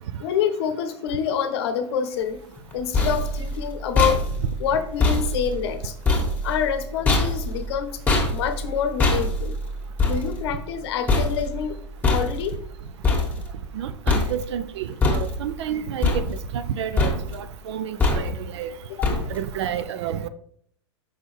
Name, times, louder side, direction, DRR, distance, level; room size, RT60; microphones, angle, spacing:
voice 1, 0.2-2.4 2.7-4.2 4.6-5.9 6.4-8.0 8.3-9.5 10.0-11.8 12.0-12.6 19.0-19.1, left 8 dB, 55° left, 0.8 m, -26 dB
sound 1, 2.6-13.8 14.1-14.7 15.0-15.7 16.0-16.7 17.0-17.5 18.0-18.5 19.0-19.6, left 2 dB, 10° left, 1.7 m, -24 dB
voice 2, 13.7-18.7 19.3-20.3, right 9 dB, 65° right, 0.5 m, -30 dB
6.1 x 5.4 x 3.3 m
hypercardioid pair, 100°, 16 cm